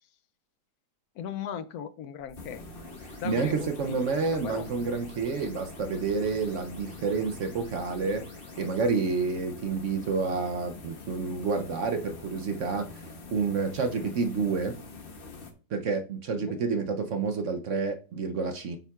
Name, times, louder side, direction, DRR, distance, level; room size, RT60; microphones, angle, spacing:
voice 1, 1.2-2.6 3.2-4.1 4.4-4.7 5.5-5.6 16.4-16.6, left 8 dB, 70° left, 13 dB, 1.0 m, -37 dB
sound 1, 2.2-9.0, equal, 5° left, 2.4 m, -52 dB
sound 2, 2.3-15.5, left 3 dB, 40° left, 1.0 m, -45 dB
voice 2, 3.0-8.2 8.6-13.0 13.3-14.7 15.7-18.8, right 4 dB, 60° right, 6 dB, 0.9 m, -29 dB
8.9 x 7.2 x 2.4 m, 0.37 s
omnidirectional pair, 1.7 m